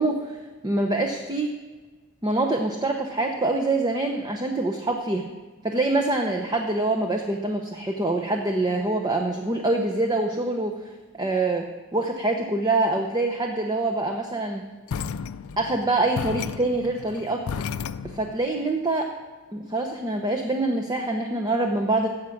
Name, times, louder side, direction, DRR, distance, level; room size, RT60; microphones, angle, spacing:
voice 1, 0.0-1.5 2.2-5.3 5.6-14.6 15.6-17.4 18.0-19.1 19.5-22.1, right 2 dB, 20° right, 2 dB, 0.7 m, -25 dB
sound 1, 14.9-18.4, left 6 dB, 85° left, 0.4 m, -33 dB
16.0 x 6.4 x 5.9 m, 1.3 s
head